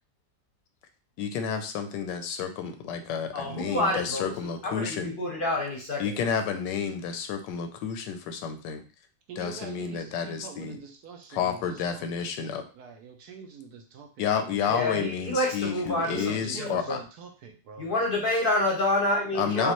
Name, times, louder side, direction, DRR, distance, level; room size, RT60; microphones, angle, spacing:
voice 1, 1.2-5.1 6.0-8.8 9.4-10.8 11.3-12.7 14.2-17.0 19.3-19.7, left 7 dB, 85° left, 7 dB, 1.3 m, -30 dB
voice 2, 3.3-4.3 4.6-6.2 14.7-17.0 17.8-19.7, left 1 dB, 45° left, -1 dB, 0.7 m, -28 dB
voice 3, 9.3-11.6 11.9-12.1 12.8-14.2 16.1-17.9 19.5-19.7, right 6 dB, 70° right, 5 dB, 1.1 m, -43 dB
5.2 x 2.4 x 3.0 m, 0.35 s
omnidirectional pair, 1.9 m